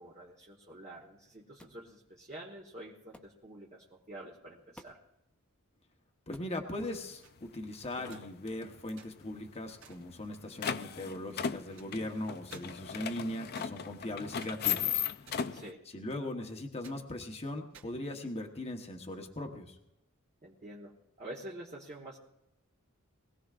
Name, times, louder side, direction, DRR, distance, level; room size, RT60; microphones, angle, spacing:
voice 1, 0.0-5.0 15.5-15.8 20.4-22.2, right 1 dB, 35° right, -5 dB, 1.3 m, -48 dB
sound 1, 1.6-1.8 3.1-3.4 4.7-5.1 6.3-6.6 7.8-8.0, equal, 5° left, 0.8 m, -55 dB
voice 2, 6.3-15.0 15.9-19.8, left 1 dB, 30° left, 3 dB, 1.1 m, -39 dB
sound 2, 6.8-6.9 7.4-7.7 8.0-8.9 9.2-9.3 9.5-9.6 10.0-15.7, left 8 dB, 50° left, 0.5 m, -36 dB
sound 3, 7.2-7.4 8.0-8.7 9.0-9.1 9.5-9.6 9.8-10.0 10.3-10.8 11.3-12.1 12.4-12.6 12.9-13.0 13.5-14.0 14.4-15.6 15.9-16.5 16.8-17.0 17.5-18.6, right 7 dB, 70° right, 2.4 m, -57 dB
21.5 x 16.0 x 2.5 m, 0.87 s
head